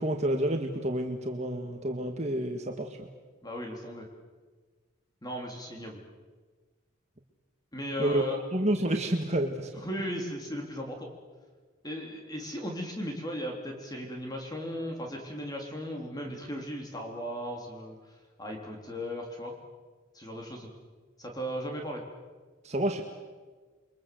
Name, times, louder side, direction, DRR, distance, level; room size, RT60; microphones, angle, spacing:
voice 1, 0.0-3.1 8.0-9.7 22.6-23.0, right 1 dB, 35° right, 3 dB, 1.8 m, -29 dB
voice 2, 3.4-4.1 5.2-6.0 7.7-8.4 9.7-11.1 11.8-18.0 18.4-19.5 20.1-20.7 21.2-22.0, equal, 20° left, 1 dB, 3.6 m, -36 dB
29.5 x 23.5 x 7.9 m, 1.4 s
head